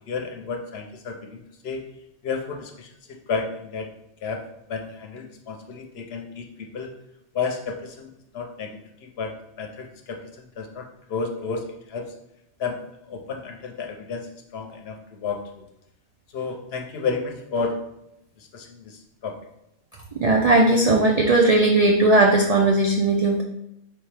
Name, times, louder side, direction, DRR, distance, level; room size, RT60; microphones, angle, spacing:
voice 1, 0.1-1.8 2.2-3.9 4.2-4.4 4.7-6.5 6.7-6.9 7.3-9.3 9.6-12.1 12.6-12.8 13.1-15.6 16.3-17.8 18.4-19.4, left 4 dB, 65° left, 3 dB, 0.8 m, -32 dB
voice 2, 20.2-23.4, right 2 dB, 65° right, 0 dB, 0.3 m, -18 dB
4.3 x 3.4 x 3.3 m, 0.81 s
omnidirectional pair, 1.3 m